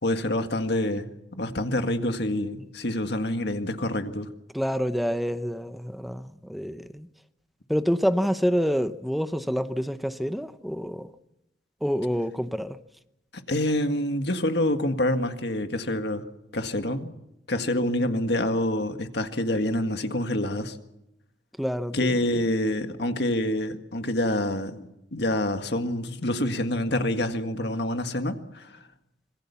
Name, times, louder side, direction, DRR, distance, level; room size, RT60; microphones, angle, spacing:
voice 1, 0.0-4.3 13.3-16.3 16.5-17.1 17.5-20.8 21.9-28.8, left 1 dB, 60° left, 1.8 m, -27 dB
voice 2, 4.5-7.1 7.7-11.1 11.8-12.8 21.6-22.1, equal, ahead, 0.9 m, -27 dB
26.0 x 21.5 x 7.1 m
head